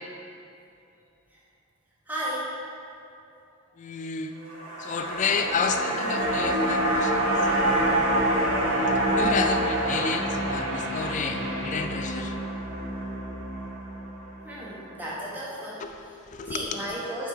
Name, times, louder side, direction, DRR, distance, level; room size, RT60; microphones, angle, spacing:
voice 1, 2.1-2.5 14.4-15.8 16.5-17.3, equal, 10° right, -7 dB, 1.2 m, -33 dB
voice 2, 3.8-4.4 4.8-7.5 8.6-12.4 15.8-16.9, left 5 dB, 35° left, 6 dB, 0.3 m, -31 dB
sound 1, 4.4-14.8 15.1-15.2, right 1 dB, 75° right, 1.2 m, -26 dB
6.0 x 3.8 x 4.6 m, 2.6 s
head